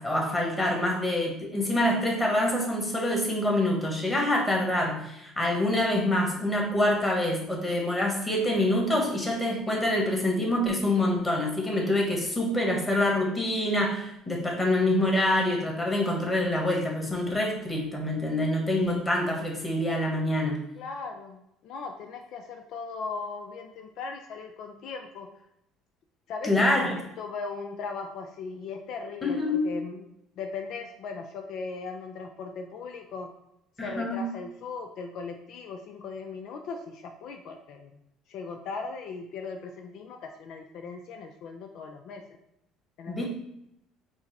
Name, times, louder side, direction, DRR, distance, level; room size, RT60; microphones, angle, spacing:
voice 1, 0.0-20.6 26.4-26.9 29.2-29.6 33.8-34.3 43.1-43.2, left 1 dB, 15° left, -1 dB, 1.4 m, -26 dB
voice 2, 20.8-25.3 26.3-26.5 27.2-30.1 30.4-33.3 33.8-37.9 38.3-42.2 43.0-43.2, left 4 dB, 65° left, 4 dB, 0.4 m, -38 dB
4.6 x 2.0 x 4.2 m, 0.82 s
supercardioid pair, 80°, 0 cm